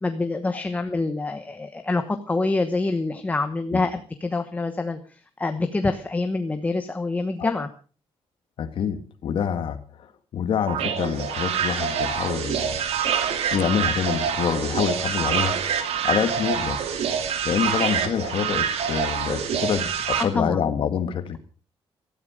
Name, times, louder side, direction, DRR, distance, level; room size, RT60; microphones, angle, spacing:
voice 1, 0.0-7.7 20.2-20.6, left 3 dB, 15° left, 7 dB, 1.1 m, -26 dB
voice 2, 8.6-10.1 10.3-12.8 13.5-15.6 16.0-16.8 17.4-21.4, left 8 dB, 60° left, 8 dB, 1.8 m, -26 dB
sound 1, 10.7-20.2, right 8 dB, 85° right, 2.6 m, -26 dB
18.0 x 13.5 x 5.0 m, 0.39 s
cardioid pair, 165°, 10 cm